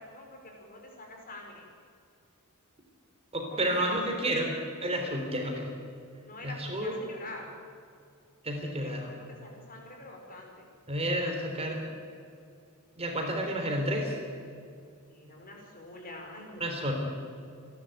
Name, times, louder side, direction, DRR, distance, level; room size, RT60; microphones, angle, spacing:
voice 1, 0.0-1.7 3.5-4.3 6.2-7.5 8.8-10.7 15.1-16.9, left 2 dB, 40° left, 1 dB, 5.1 m, -46 dB
voice 2, 3.3-4.5 4.8-5.7 6.4-6.9 8.4-9.1 10.9-11.8 13.0-14.1 16.6-16.9, right 1 dB, 30° right, 2 dB, 3.6 m, -30 dB
28.5 x 11.5 x 9.3 m, 2.3 s
head